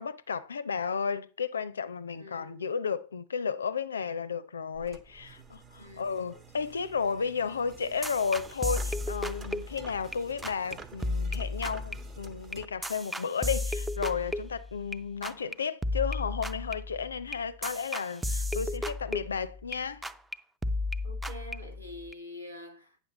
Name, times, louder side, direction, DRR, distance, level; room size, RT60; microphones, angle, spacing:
voice 1, 0.0-20.0, left 6 dB, 70° left, 0.4 m, -33 dB
voice 2, 2.1-2.7 5.8-6.1 21.0-23.0, left 1 dB, 85° right, 1.1 m, -46 dB
sound 1, 4.7-12.7, right 4 dB, 25° right, 0.9 m, -50 dB
sound 2, 8.0-10.2 10.4-10.7 11.0-15.0 15.2-15.5 15.8-19.8 20.0-20.4 20.6-22.1, left 2 dB, 5° right, 0.4 m, -34 dB
9.0 x 6.0 x 3.9 m
figure-of-eight pair, 90°, 0 cm